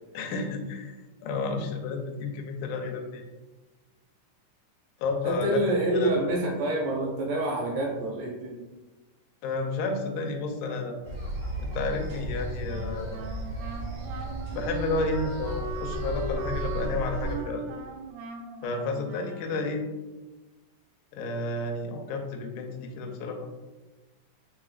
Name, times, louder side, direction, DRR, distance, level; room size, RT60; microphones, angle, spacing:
voice 1, 0.1-0.9 1.2-3.3 5.0-6.1 9.4-11.0 11.6-13.2 14.5-17.7 18.6-19.9 21.1-23.5, left 3 dB, 80° left, 3 dB, 2.0 m, -31 dB
voice 2, 5.2-8.6, right 1 dB, 75° right, -2 dB, 2.6 m, -27 dB
sound 1, 11.0-17.3, right 1 dB, 55° right, 2.0 m, -34 dB
Wind instrument woodwind instrument, 12.6-20.0, right 2 dB, 90° right, 1.7 m, -39 dB
5.7 x 3.8 x 2.3 m, 1.2 s
omnidirectional pair, 4.1 m